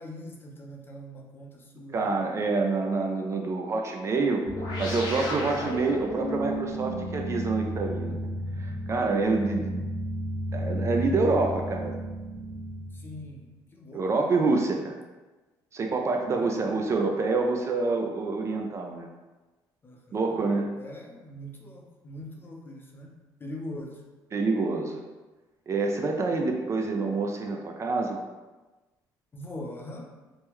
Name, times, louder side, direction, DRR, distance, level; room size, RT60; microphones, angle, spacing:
voice 1, 0.0-2.1 5.3-5.7 12.9-14.3 16.3-16.8 19.8-23.1 23.4-24.0 29.3-30.0, left 1 dB, 25° left, 0 dB, 0.5 m, -42 dB
voice 2, 1.9-4.4 4.8-8.2 8.6-9.8 10.5-12.0 13.9-15.0 15.7-19.1 20.1-20.7 24.3-25.0 25.7-28.2, right 3 dB, 35° right, 2 dB, 0.4 m, -27 dB
sound 1, 4.5-13.3, equal, 65° left, 0.8 m, -33 dB
3.0 x 2.1 x 3.4 m, 1.2 s
cardioid pair, 100°, 8 cm